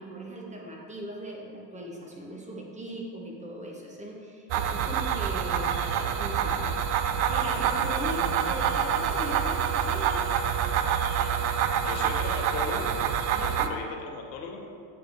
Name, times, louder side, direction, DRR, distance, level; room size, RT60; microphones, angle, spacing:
voice 1, 0.0-10.5 13.3-13.7, equal, 15° right, -1 dB, 0.9 m, -39 dB
sound 1, 4.5-13.7, right 8 dB, 55° right, 0.5 m, -27 dB
voice 2, 11.8-13.0 13.4-14.8, left 4 dB, 85° left, 2 dB, 0.9 m, -37 dB
7.7 x 3.6 x 3.5 m, 2.3 s
hypercardioid pair, 90°, 48 cm